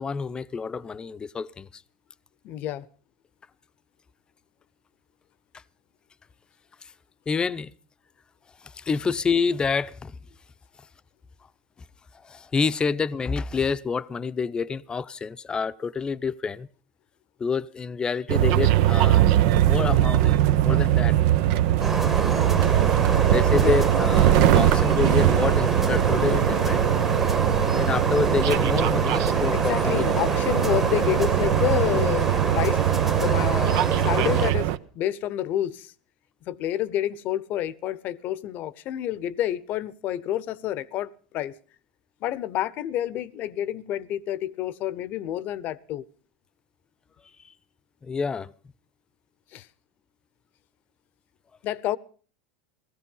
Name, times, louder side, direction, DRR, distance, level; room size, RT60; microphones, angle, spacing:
voice 1, 0.0-1.8 7.3-7.7 8.8-10.2 12.2-16.7 17.4-21.1 23.3-26.9 27.8-30.1 48.0-48.5, left 5 dB, 20° left, 0.8 m, -28 dB
voice 2, 2.4-2.9 22.3-22.6 23.5-23.8 24.7-24.8 29.5-35.9 36.5-41.6 42.2-46.0 49.5-49.7 51.6-52.0, left 12 dB, 50° left, 0.9 m, -29 dB
sound 1, 18.3-34.8, right 12 dB, 65° right, 0.9 m, -21 dB
sound 2, 21.8-34.5, right 1 dB, 10° right, 1.2 m, -28 dB
17.5 x 15.0 x 5.5 m
hypercardioid pair, 95°, 4 cm